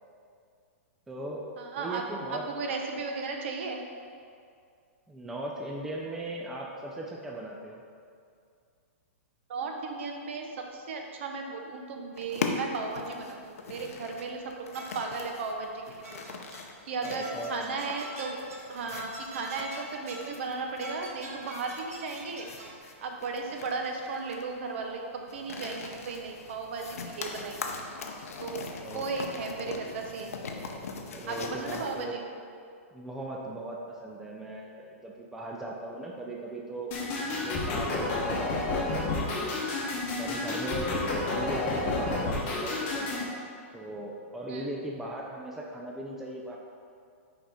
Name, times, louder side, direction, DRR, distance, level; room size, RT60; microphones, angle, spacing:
voice 1, 1.1-1.5 1.7-2.4 3.0-3.1 5.1-7.8 17.0-17.8 28.8-29.2 29.6-29.7 31.1-32.2 32.9-37.0 37.2-39.5 40.2-43.4 43.7-46.6, right 1 dB, 5° right, -2 dB, 0.4 m, -38 dB
voice 2, 1.6-2.0 2.3-3.8 9.5-16.4 16.8-18.4 18.7-22.5 23.0-27.7 28.4-28.6 28.9-30.4 31.3-32.2 44.5-44.7, right 4 dB, 55° right, 2 dB, 0.8 m, -35 dB
sound 1, 12.2-32.0, left 4 dB, 85° left, 0.7 m, -41 dB
sound 2, 14.7-15.4 16.0-16.8 17.0-20.4 20.8-22.8, right 1 dB, 85° right, 1.3 m, -44 dB
sound 3, 36.9-43.3, left 2 dB, 25° left, 1.0 m, -30 dB
5.8 x 4.9 x 4.1 m, 2.3 s
hypercardioid pair, 160°, 8 cm